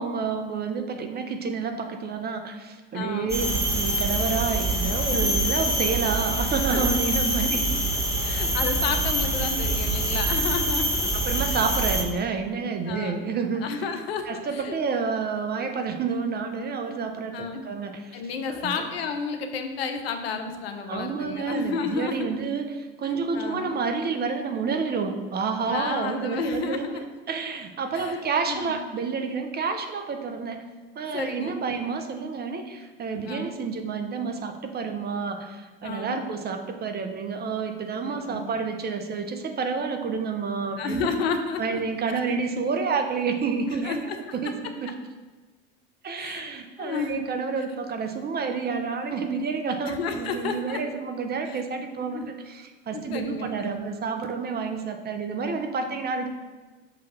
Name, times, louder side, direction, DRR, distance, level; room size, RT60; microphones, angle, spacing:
voice 1, 0.0-7.8 11.1-13.7 14.2-18.2 18.5-18.9 20.9-26.9 27.3-30.6 31.0-41.1 41.6-44.0 44.3-44.9 46.0-56.3, right 5 dB, 30° right, 6 dB, 0.8 m, -29 dB
voice 2, 2.9-3.4 5.2-5.3 6.7-6.8 8.2-11.1 11.4-11.6 12.9-13.3 13.6-14.7 17.3-17.6 18.1-22.4 23.3-23.8 25.7-27.0 27.9-28.2 28.5-28.8 31.1-31.5 33.2-33.5 35.8-36.2 38.1-38.5 40.8-41.8 42.1-42.2 43.8-44.2 46.2-46.5 46.8-47.2 49.9-50.8 51.5-51.6 52.1-52.3 52.9-53.8, left 5 dB, 85° left, 6 dB, 0.8 m, -31 dB
sound 1, 3.3-12.0, right 1 dB, 10° right, 1.5 m, -25 dB
6.3 x 3.2 x 5.6 m, 1.3 s
hypercardioid pair, 80°, 30 cm